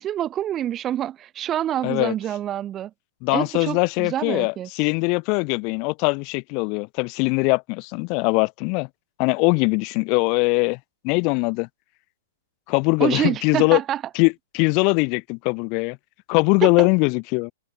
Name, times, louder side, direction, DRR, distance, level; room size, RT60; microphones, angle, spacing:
voice 1, 0.0-2.9 3.3-4.7 13.0-14.0 16.6-16.9, right 11 dB, 20° right, 2.4 m, -26 dB
voice 2, 1.8-2.1 3.2-8.9 9.2-10.8 11.0-11.7 12.7-13.8 14.1-16.0 16.3-17.5, left 33 dB, 35° left, 2.8 m, -21 dB
open air
hypercardioid pair, 155°, 0 cm